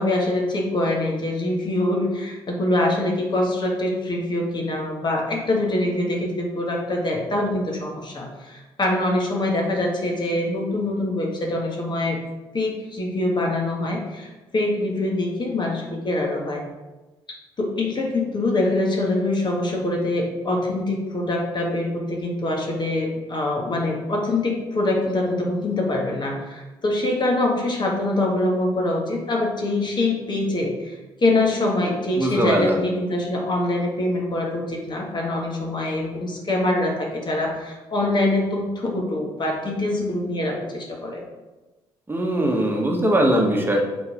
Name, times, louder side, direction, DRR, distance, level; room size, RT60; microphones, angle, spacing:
voice 1, 0.0-12.2 12.5-16.6 17.6-41.2, left 2 dB, 40° left, 0 dB, 1.7 m, -24 dB
voice 2, 32.2-32.8 42.1-43.9, right 1 dB, 20° right, 0 dB, 1.3 m, -20 dB
4.6 x 4.1 x 5.0 m, 1.1 s
hypercardioid pair, 55°, 12 cm